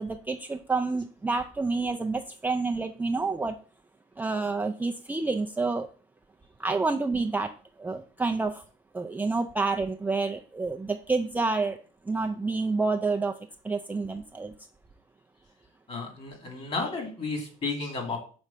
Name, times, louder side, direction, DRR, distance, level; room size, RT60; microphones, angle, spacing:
voice 1, 0.0-3.6 4.2-5.9 6.6-7.5 7.8-8.6 8.9-11.8 12.1-13.4 13.6-14.5, right 3 dB, 10° right, 3 dB, 0.4 m, -28 dB
voice 2, 15.9-18.2, left 3 dB, 35° left, 3 dB, 2.2 m, -32 dB
6.0 x 3.2 x 5.5 m, 0.39 s
cardioid pair, 110°, 17 cm